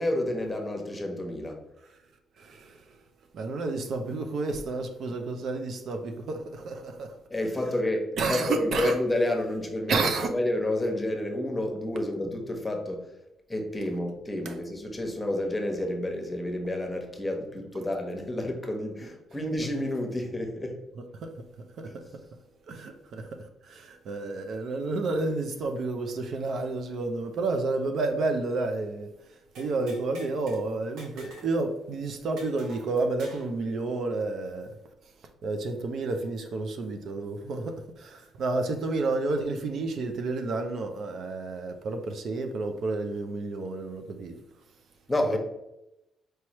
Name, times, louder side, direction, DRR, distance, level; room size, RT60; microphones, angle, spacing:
voice 1, 0.0-1.6 7.3-9.9 10.3-13.1 13.5-20.8 21.8-21.9 45.1-45.4, left 1 dB, 15° left, 1.0 m, -30 dB
voice 2, 2.4-2.9 3.3-7.2 8.2-9.0 9.9-10.3 14.4-14.6 21.1-21.3 21.8-22.1 22.7-34.8 35.4-44.4 45.3-45.4, right 3 dB, 65° right, 0.5 m, -30 dB
sound 1, 29.6-30.6 31.0-31.5 31.8-31.9 32.4-33.5, right 1 dB, 85° right, 1.1 m, -46 dB
4.6 x 3.1 x 3.0 m
cardioid pair, 90°, 0 cm